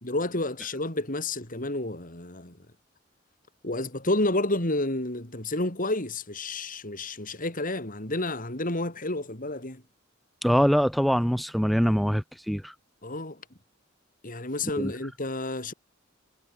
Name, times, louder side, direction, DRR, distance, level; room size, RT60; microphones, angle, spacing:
voice 1, 0.0-2.6 3.6-9.8 13.0-13.4 14.2-15.7, left 2 dB, 45° left, 6.2 m, -30 dB
voice 2, 10.4-12.7 14.8-14.9, equal, ahead, 4.0 m, -23 dB
head